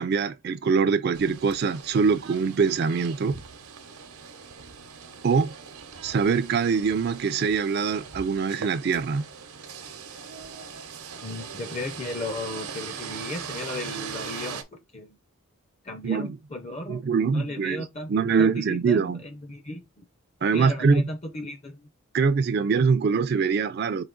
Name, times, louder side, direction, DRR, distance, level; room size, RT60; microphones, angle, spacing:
voice 1, 0.0-3.3 5.2-5.5 6.0-9.2 16.0-16.4 16.9-19.2 20.4-21.0 22.1-24.0, right 5 dB, 45° right, 0.3 m, -23 dB
sound 1, 1.1-14.6, right 6 dB, 85° right, 0.8 m, -40 dB
voice 2, 11.2-15.1 15.8-17.0 17.3-18.1 18.4-20.0 20.5-21.9, left 2 dB, 30° left, 0.5 m, -35 dB
4.8 x 2.7 x 3.8 m
head